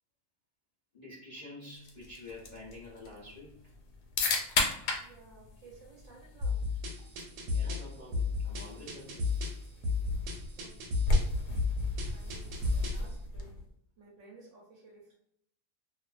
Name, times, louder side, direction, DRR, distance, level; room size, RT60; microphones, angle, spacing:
voice 1, 0.9-3.6 7.5-9.2, left 2 dB, 55° left, -7 dB, 0.4 m, -48 dB
sound 1, 1.8-13.7, left 2 dB, 90° left, 1.2 m, -36 dB
voice 2, 5.0-6.6 9.8-9.9 10.6-11.2 12.1-13.6 14.0-15.2, right 3 dB, 60° right, -2 dB, 0.9 m, -56 dB
sound 2, 6.4-13.1, left 4 dB, 85° right, 1.1 m, -33 dB
2.5 x 2.3 x 2.3 m, 0.70 s
omnidirectional pair, 1.7 m